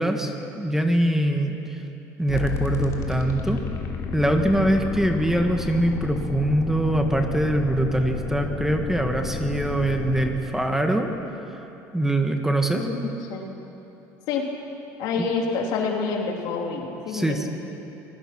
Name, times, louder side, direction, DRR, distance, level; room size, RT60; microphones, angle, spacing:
voice 1, 0.0-1.8 2.2-3.6 4.1-11.1 11.9-12.9 15.2-15.3 17.1-17.5, right 1 dB, 5° right, 4 dB, 1.6 m, -23 dB
sound 1, 2.3-10.3, left 5 dB, 45° left, 2.9 m, -31 dB
voice 2, 12.7-13.4 14.3-14.4 15.0-17.4, left 4 dB, 70° left, 1 dB, 3.2 m, -27 dB
25.5 x 20.0 x 6.1 m, 3.0 s
supercardioid pair, 110°, 7 cm